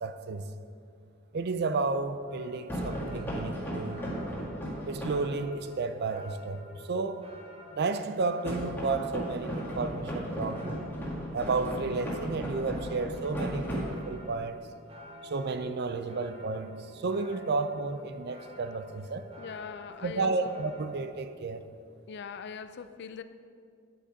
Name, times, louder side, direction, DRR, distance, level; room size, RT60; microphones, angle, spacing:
voice 1, 0.0-0.5 1.3-4.0 4.9-7.3 7.7-10.8 11.3-14.6 15.2-19.3 20.0-21.6, right 3 dB, 50° right, 0.5 m, -32 dB
sound 1, 2.3-20.9, equal, 30° right, 1.3 m, -51 dB
sound 2, 2.7-5.3 8.5-14.3, equal, 10° left, 1.9 m, -35 dB
voice 2, 19.4-20.5 22.1-23.2, left 6 dB, 55° left, 0.4 m, -41 dB
9.2 x 7.3 x 5.0 m
head